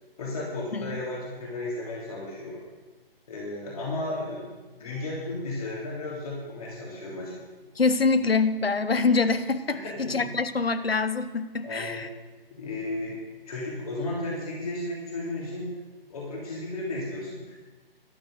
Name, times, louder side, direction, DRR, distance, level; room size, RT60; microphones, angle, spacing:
voice 1, 0.2-2.6 3.3-7.3 9.7-10.3 11.6-12.1 12.5-15.7 16.1-17.6, left 2 dB, 40° left, -4 dB, 3.4 m, -34 dB
voice 2, 7.8-12.1, left 4 dB, 75° left, 12 dB, 1.0 m, -25 dB
13.0 x 8.8 x 7.8 m, 1.3 s
figure-of-eight pair, 145°, 30 cm